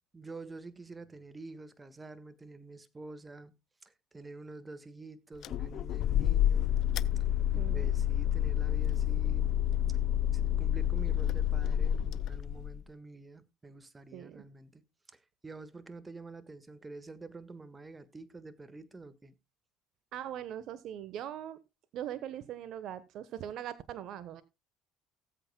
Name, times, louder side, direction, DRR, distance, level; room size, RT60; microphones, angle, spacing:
voice 1, 0.1-3.5 3.8-6.8 7.5-9.5 9.9-10.0 10.3-14.8 15.1-19.3, right 3 dB, 20° right, 1.5 m, -48 dB
sound 1, 5.4-12.8, left 11 dB, 60° left, 0.5 m, -29 dB
voice 2, 7.6-8.0 14.1-14.4 20.1-21.6 21.9-24.4, right 11 dB, 60° right, 1.0 m, -41 dB
18.5 x 8.1 x 2.2 m
supercardioid pair, 80°, 0 cm